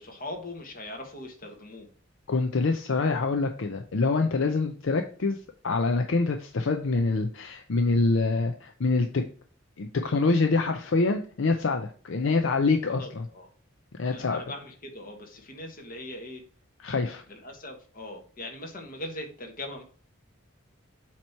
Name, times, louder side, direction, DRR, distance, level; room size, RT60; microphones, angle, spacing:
voice 1, 0.0-1.9 4.4-4.6 13.0-13.5 14.1-16.4 17.3-19.8, left 1 dB, 45° left, 3 dB, 1.4 m, -40 dB
voice 2, 2.3-5.4 5.6-9.2 9.8-13.2 13.9-14.4 16.8-17.2, left 3 dB, 65° left, 5 dB, 0.6 m, -25 dB
7.2 x 3.0 x 4.5 m, 0.43 s
head